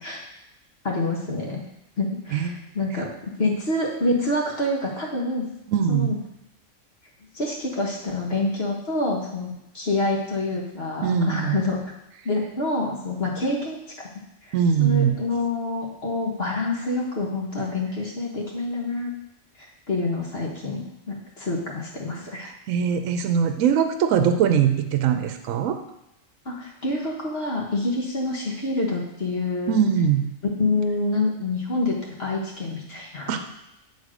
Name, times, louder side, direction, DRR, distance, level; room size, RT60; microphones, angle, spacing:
voice 1, 0.8-1.6 2.0-5.4 5.9-6.2 7.3-9.5 9.7-11.8 12.2-13.8 14.4-14.5 14.8-19.1 19.9-22.5 26.4-29.8 30.6-33.3, left 2 dB, 50° left, -2 dB, 1.4 m, -27 dB
voice 2, 5.7-6.1 11.0-11.6 14.5-15.2 22.4-25.8 29.7-30.2 33.3-33.5, right 8 dB, 80° right, 7 dB, 1.0 m, -22 dB
8.1 x 4.0 x 4.9 m, 0.85 s
omnidirectional pair, 1.4 m